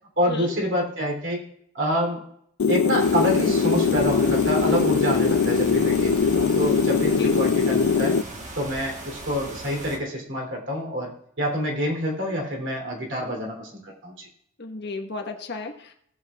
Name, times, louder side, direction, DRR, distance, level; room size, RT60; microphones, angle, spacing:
voice 1, 0.2-1.4 1.7-2.2 2.7-8.2 8.6-11.1 11.4-14.3, equal, 60° right, 0 dB, 3.2 m, -27 dB
sound 1, 2.6-8.2, left 5 dB, 90° left, 0.5 m, -21 dB
sound 2, 3.0-10.0, right 2 dB, 35° right, 1.3 m, -38 dB
voice 2, 14.6-15.9, left 3 dB, 55° left, 3 dB, 1.4 m, -34 dB
18.0 x 7.9 x 2.4 m, 0.69 s
head